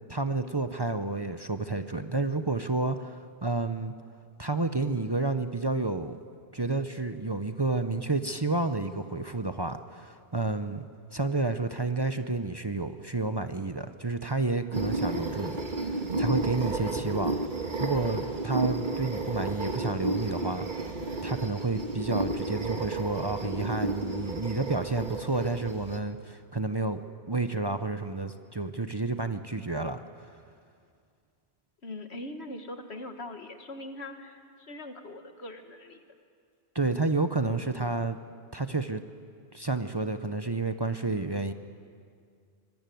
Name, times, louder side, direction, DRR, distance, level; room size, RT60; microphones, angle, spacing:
voice 1, 0.1-3.9 4.4-6.2 6.5-10.9 11.1-15.6 15.9-17.4 17.8-20.9 21.2-30.0 36.7-38.2 38.5-39.0 39.5-41.5, right 3 dB, 25° right, 9 dB, 0.8 m, -30 dB
sound 1, 14.7-26.0, right 2 dB, 50° right, 1.7 m, -32 dB
voice 2, 31.8-36.0, left 1 dB, 80° left, 6 dB, 2.0 m, -41 dB
24.5 x 21.0 x 9.3 m, 2.2 s
omnidirectional pair, 1.1 m